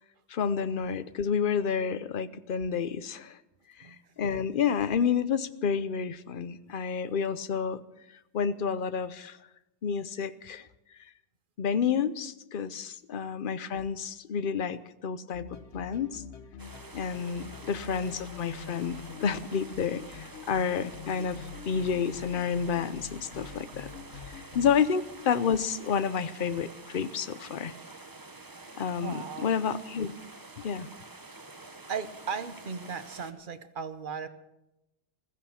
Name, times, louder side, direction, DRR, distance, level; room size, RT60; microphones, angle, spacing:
voice 1, 0.3-3.4 3.9-7.8 8.3-9.4 9.8-10.7 11.6-15.5 15.7-16.2 16.9-23.9 24.3-27.7 28.8-30.1 30.6-30.9, left 7 dB, 55° left, 14 dB, 0.8 m, -30 dB
voice 2, 3.8-4.1 17.4-17.5 29.0-29.6 31.9-34.3, right 6 dB, 50° right, 11 dB, 1.0 m, -37 dB
sound 1, 15.3-24.9, left 7 dB, 80° left, 1.3 m, -45 dB
sound 2, 16.6-33.3, right 2 dB, 20° right, 0.9 m, -48 dB
15.5 x 14.0 x 5.8 m, 0.92 s
omnidirectional pair, 1.2 m